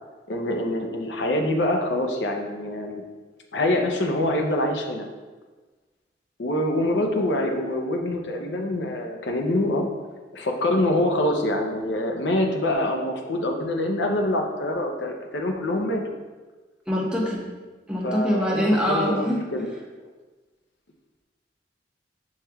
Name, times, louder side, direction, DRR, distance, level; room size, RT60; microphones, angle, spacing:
voice 1, 0.3-3.0 3.5-5.1 6.4-9.9 10.3-16.0 18.0-19.2 19.5-19.7, left 1 dB, 75° left, 3 dB, 0.6 m, -25 dB
voice 2, 16.9-17.4 17.9-19.7, equal, 5° right, -4 dB, 0.8 m, -24 dB
7.1 x 3.2 x 2.3 m, 1.3 s
head